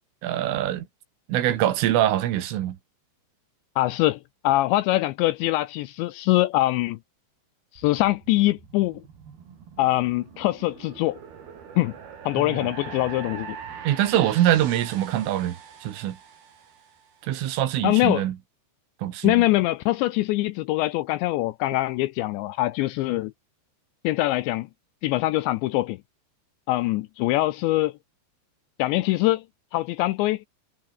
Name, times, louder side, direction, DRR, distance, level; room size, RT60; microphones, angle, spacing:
voice 1, 0.2-0.9 1.3-2.8 12.4-12.7 13.9-15.6 15.8-16.2 17.2-18.4 19.0-19.4, right 12 dB, 80° right, 4.5 m, -24 dB
voice 2, 3.8-7.0 7.7-9.0 9.8-11.2 11.8-11.9 12.3-13.6 17.8-18.3 19.2-23.3 24.0-24.7 25.0-26.0 26.7-27.9 28.8-29.4 29.7-30.4, left 17 dB, 85° left, 2.7 m, -23 dB
sound 1, 7.8-17.1, right 7 dB, 55° right, 5.3 m, -43 dB
omnidirectional pair, 5.7 m